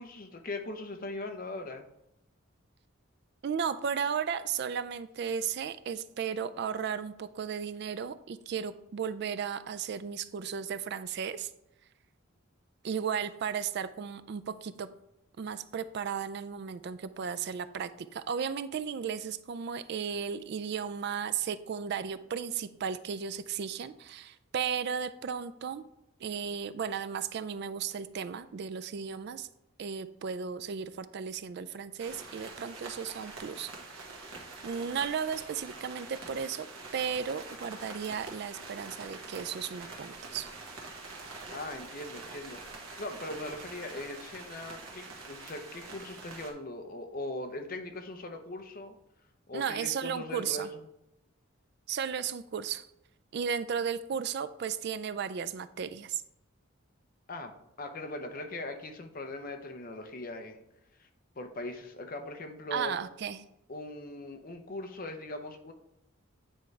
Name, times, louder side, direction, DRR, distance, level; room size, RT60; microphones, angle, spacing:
voice 1, 0.0-1.9 41.5-42.6 43.0-48.9 49.5-50.9 57.3-60.6 61.0-61.1 61.4-63.0 63.7-65.7, left 2 dB, 40° left, 5 dB, 0.7 m, -40 dB
voice 2, 3.4-11.5 12.8-14.9 15.4-25.8 26.2-29.5 29.8-33.7 34.6-36.7 36.9-40.5 49.5-50.7 51.9-52.9 53.3-56.2 62.7-63.4, right 7 dB, 50° right, 13 dB, 0.3 m, -35 dB
sound 1, 32.0-46.5, right 3 dB, 80° right, 1.5 m, -45 dB
9.0 x 4.7 x 3.3 m, 0.84 s
head